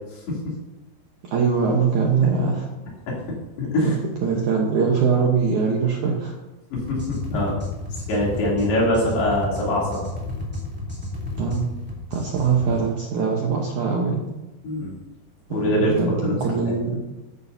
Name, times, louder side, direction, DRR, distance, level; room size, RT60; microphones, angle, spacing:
voice 1, 0.1-0.5 3.1-3.2 3.6-4.0 6.7-7.6 8.1-10.0 14.6-15.0 15.5-16.3 16.7-16.8, left 1 dB, 70° left, -4 dB, 5.1 m, -23 dB
voice 2, 1.3-2.7 3.8-6.4 11.4-11.7 12.1-14.2 15.5-17.0, right 5 dB, 70° right, -1 dB, 1.9 m, -22 dB
sound 1, 6.7-12.8, left 2 dB, 5° right, 2.2 m, -32 dB
15.0 x 9.7 x 2.8 m, 1.1 s
omnidirectional pair, 4.9 m